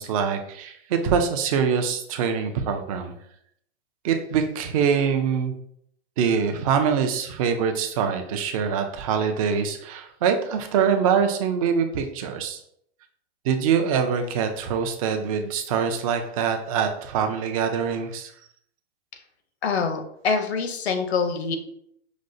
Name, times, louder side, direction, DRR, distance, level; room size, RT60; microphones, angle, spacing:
voice 1, 0.0-3.1 4.0-5.5 6.2-12.6 13.4-18.3, right 7 dB, 35° right, 6 dB, 0.4 m, -24 dB
voice 2, 19.6-21.6, left 5 dB, 80° left, 6 dB, 0.7 m, -25 dB
5.0 x 2.0 x 2.5 m, 0.70 s
hypercardioid pair, 140°, 31 cm